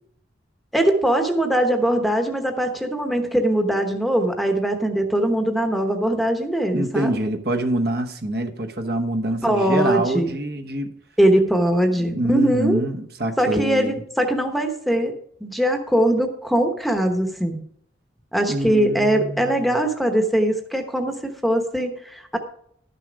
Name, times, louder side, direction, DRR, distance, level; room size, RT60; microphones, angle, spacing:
voice 1, 0.7-7.1 9.4-10.3 11.2-12.8 13.4-15.1 15.4-17.6 18.3-22.4, right 1 dB, ahead, 5 dB, 1.0 m, -21 dB
voice 2, 6.7-10.9 11.9-14.0 18.5-19.8, right 1 dB, 55° right, 5 dB, 1.1 m, -25 dB
12.5 x 6.8 x 5.1 m, 0.68 s
head